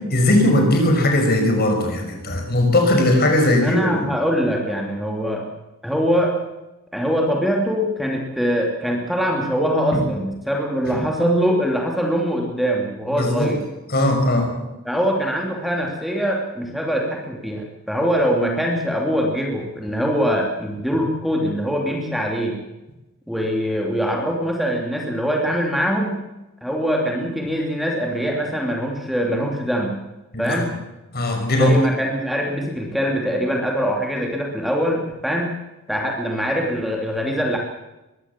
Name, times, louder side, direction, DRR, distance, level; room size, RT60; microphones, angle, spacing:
voice 1, 0.1-4.1 9.9-10.0 10.9-11.0 13.1-13.5 13.9-14.5 30.3-30.6 31.1-31.7, left 1 dB, 50° left, 3 dB, 5.9 m, -18 dB
voice 2, 3.6-5.4 5.8-6.4 6.9-13.6 14.8-22.6 23.3-26.2 26.6-29.9 30.4-30.7 31.6-35.6 35.9-37.6, equal, ahead, 0 dB, 2.9 m, -23 dB
22.0 x 17.0 x 7.4 m, 1.0 s
head